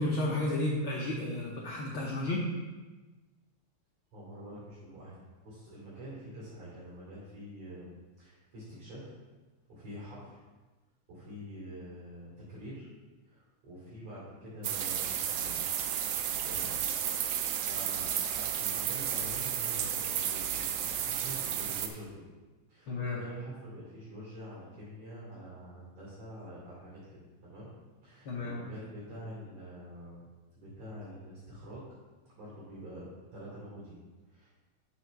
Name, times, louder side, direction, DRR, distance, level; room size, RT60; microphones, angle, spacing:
voice 1, 0.0-2.5 22.9-23.2 28.2-28.6, left 1 dB, 80° left, -3 dB, 1.1 m, -32 dB
voice 2, 4.1-5.2 5.4-7.9 8.2-9.2 9.7-10.4 11.1-12.9 13.2-15.6 16.4-16.7 17.1-22.2 22.7-27.7 28.0-30.2 30.5-31.9 32.3-34.0 34.3-34.5, equal, 55° right, -9 dB, 3.9 m, -46 dB
sound 1, 14.6-21.9, right 9 dB, 85° right, 1.4 m, -32 dB
6.8 x 5.4 x 5.8 m, 1.3 s
omnidirectional pair, 3.5 m